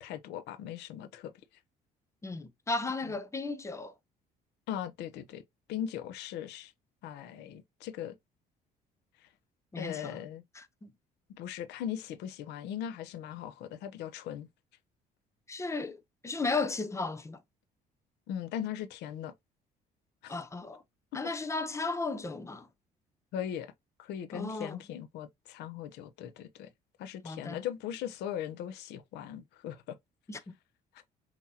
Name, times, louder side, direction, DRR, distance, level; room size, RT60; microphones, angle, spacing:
voice 1, 0.0-1.3 4.7-5.4 5.7-6.7 7.0-8.2 9.8-10.4 11.3-14.5 18.3-19.3 20.2-20.3 23.3-23.7 24.0-26.7 27.0-30.0, left 10 dB, 85° left, 0.8 m, -39 dB
voice 2, 2.2-3.9 9.7-10.2 10.6-10.9 15.5-17.4 20.3-20.8 21.1-22.7 24.3-24.8 27.2-27.6 30.3-30.6, left 3 dB, 15° left, 0.8 m, -35 dB
5.9 x 2.9 x 2.8 m
cardioid pair, 110°, 17 cm